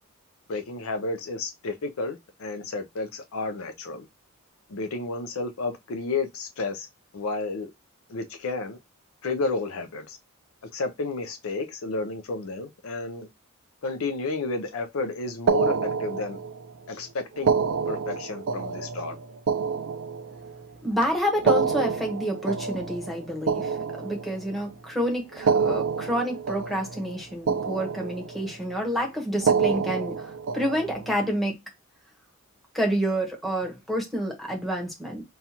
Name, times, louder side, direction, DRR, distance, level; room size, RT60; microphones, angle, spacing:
voice 1, 0.5-4.1 4.7-6.9 7.1-7.7 8.1-8.8 9.2-10.2 10.7-13.3 13.8-16.4 16.9-17.5 17.9-19.2, left 3 dB, 70° left, 0.5 m, -31 dB
sound 1, 15.5-16.7 17.3-20.7 21.3-24.6 25.3-27.2 27.5-28.5 29.3-31.2, right 5 dB, 60° right, 0.3 m, -27 dB
voice 2, 20.8-31.6 32.7-35.2, equal, ahead, 1.1 m, -28 dB
5.4 x 2.4 x 2.9 m
head